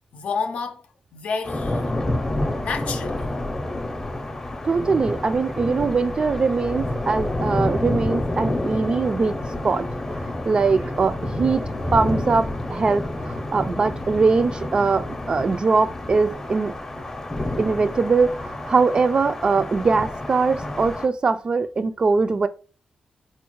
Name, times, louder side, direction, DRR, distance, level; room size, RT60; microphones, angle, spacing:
voice 1, 0.1-2.0 2.6-3.3, left 5 dB, 70° left, 0.5 m, -29 dB
sound 1, 1.4-21.1, left 1 dB, 20° left, 0.6 m, -29 dB
voice 2, 4.6-9.9 10.1-16.8 17.6-22.5, right 4 dB, 40° right, 0.3 m, -22 dB
4.3 x 2.1 x 3.0 m
cardioid pair, 90°, 2 cm